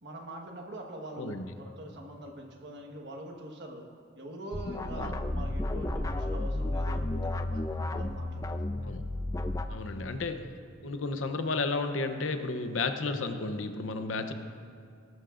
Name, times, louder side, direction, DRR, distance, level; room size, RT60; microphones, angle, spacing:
voice 1, 0.0-3.9 4.2-7.7 7.9-8.6, right 1 dB, 60° right, 2 dB, 1.4 m, -43 dB
sound 1, 4.5-9.7, left 1 dB, 15° left, 0.4 m, -32 dB
voice 2, 9.7-10.5 10.8-14.3, left 3 dB, 70° left, 8 dB, 0.8 m, -32 dB
18.0 x 12.5 x 2.5 m, 2.4 s
head